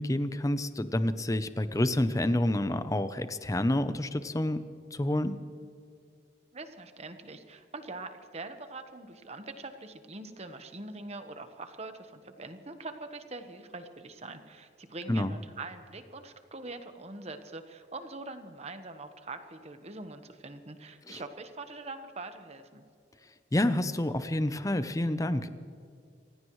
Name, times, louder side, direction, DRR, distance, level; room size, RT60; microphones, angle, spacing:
voice 1, 0.0-4.6 4.9-5.3 15.1-15.3 21.1-21.2 23.5-25.5, left 1 dB, 20° left, 12 dB, 0.7 m, -28 dB
voice 2, 6.5-22.8, right 3 dB, 35° right, 8 dB, 1.2 m, -43 dB
28.5 x 16.0 x 3.2 m, 2.4 s
head